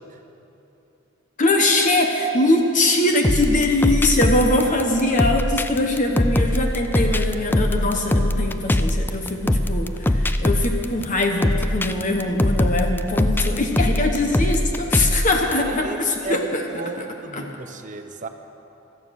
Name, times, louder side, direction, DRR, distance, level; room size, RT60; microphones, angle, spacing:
voice 1, 1.4-16.6 17.0-17.1 17.3-17.4, left 2 dB, 35° left, 3 dB, 1.1 m, -22 dB
sound 1, 3.2-15.5, left 1 dB, 10° left, 0.4 m, -21 dB
voice 2, 15.6-18.3, right 2 dB, 40° right, 7 dB, 0.9 m, -33 dB
16.5 x 13.0 x 6.5 m, 2.9 s
head